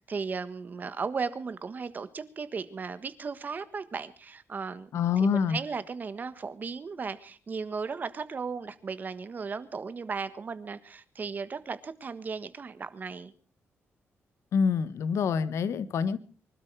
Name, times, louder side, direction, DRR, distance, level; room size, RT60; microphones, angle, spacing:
voice 1, 0.0-4.9 5.2-13.3, right 5 dB, 40° right, 1.4 m, -36 dB
voice 2, 4.9-5.6 14.5-16.2, left 6 dB, 75° left, 1.2 m, -26 dB
24.5 x 12.5 x 4.7 m
wide cardioid pair, 130°, 5 cm